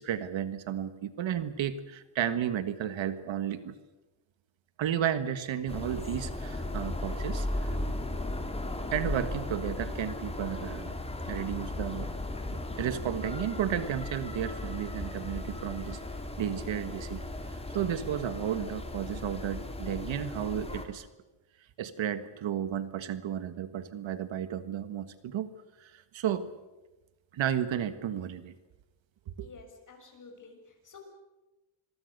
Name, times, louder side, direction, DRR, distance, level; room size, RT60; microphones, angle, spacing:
voice 1, 0.0-3.7 4.8-7.7 8.9-10.9 11.2-12.1 12.5-16.0 16.4-17.2 17.7-21.1 21.8-25.5 25.8-26.5 27.3-28.5 29.4-29.5, right 9 dB, 65° right, 12 dB, 1.7 m, -33 dB
sound 1, 5.7-20.9, left 1 dB, 10° left, 3.1 m, -36 dB
voice 2, 29.4-31.0, left 4 dB, 40° left, 3 dB, 7.2 m, -51 dB
27.0 x 22.0 x 6.7 m, 1.1 s
cardioid pair, 105°, 49 cm